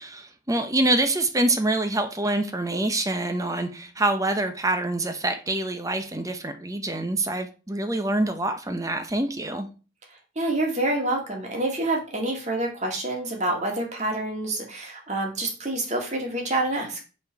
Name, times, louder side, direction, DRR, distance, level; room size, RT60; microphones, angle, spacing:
voice 1, 0.0-9.7, right 2 dB, 15° right, 0.8 m, -26 dB
voice 2, 10.4-17.0, right 2 dB, 35° right, 2.2 m, -27 dB
8.1 x 4.4 x 4.7 m
head